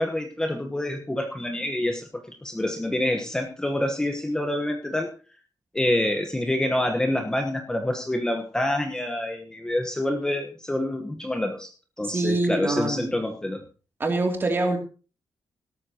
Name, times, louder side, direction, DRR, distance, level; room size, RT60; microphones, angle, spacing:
voice 1, 0.0-2.1 2.4-5.1 5.7-11.7 12.0-13.6, left 1 dB, 10° left, 4 dB, 1.2 m, -27 dB
voice 2, 12.1-13.1 14.0-14.8, right 2 dB, 30° right, 3 dB, 2.8 m, -24 dB
17.5 x 13.0 x 3.0 m, 0.35 s
wide cardioid pair, 170°, 8 cm